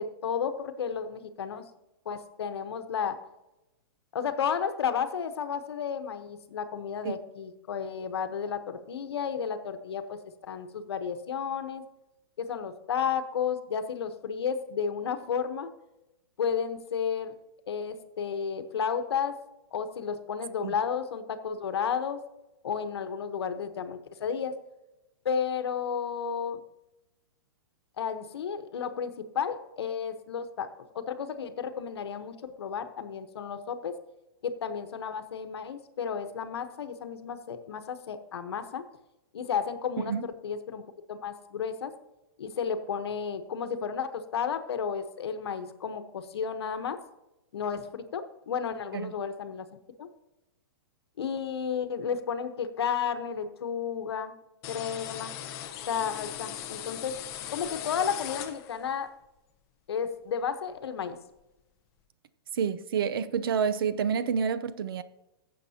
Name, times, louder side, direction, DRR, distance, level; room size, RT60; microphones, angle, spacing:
voice 1, 0.0-1.6 2.0-3.2 4.1-11.8 12.4-15.7 16.4-17.3 17.7-19.4 19.7-22.2 22.6-24.5 25.2-26.6 28.0-30.7 30.9-33.9 34.4-38.8 39.3-41.9 42.4-47.0 47.5-49.6 50.0-50.1 51.2-54.4 54.7-55.3 55.9-57.2 57.5-59.1 59.9-61.2, left 7 dB, 85° left, 1.1 m, -32 dB
voice 2, 40.0-40.3 48.9-49.1 62.5-65.0, right 7 dB, 65° right, 0.7 m, -28 dB
sound 1, 54.6-59.0, left 11 dB, 25° left, 0.7 m, -39 dB
15.0 x 7.4 x 2.8 m
hypercardioid pair, 165°, 13 cm